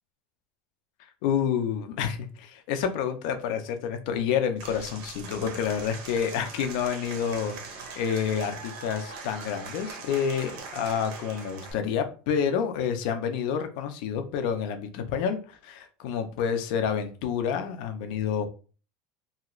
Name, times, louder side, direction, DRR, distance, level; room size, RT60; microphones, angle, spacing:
voice 1, 1.2-18.5, left 7 dB, 55° left, 7 dB, 0.5 m, -29 dB
Applause / Crowd, 4.6-11.7, right 4 dB, 50° right, 0.6 m, -41 dB
2.8 x 2.4 x 3.0 m, 0.37 s
cardioid pair, 180°, 5 cm